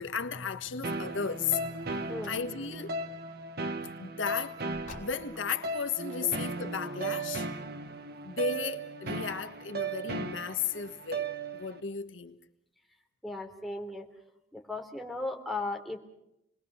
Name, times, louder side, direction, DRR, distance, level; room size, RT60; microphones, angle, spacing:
voice 1, 0.0-2.9 4.0-4.6 5.0-7.5 8.2-11.3 11.5-12.4, left 6 dB, 75° left, 1.4 m, -34 dB
sound 1, 0.8-11.8, right 3 dB, 55° right, 1.4 m, -36 dB
Car, 1.8-2.5 4.7-5.5, left 2 dB, 40° left, 3.2 m, -50 dB
voice 2, 13.2-14.1 14.5-16.0, left 2 dB, ahead, 3.4 m, -36 dB
27.5 x 21.0 x 6.9 m
head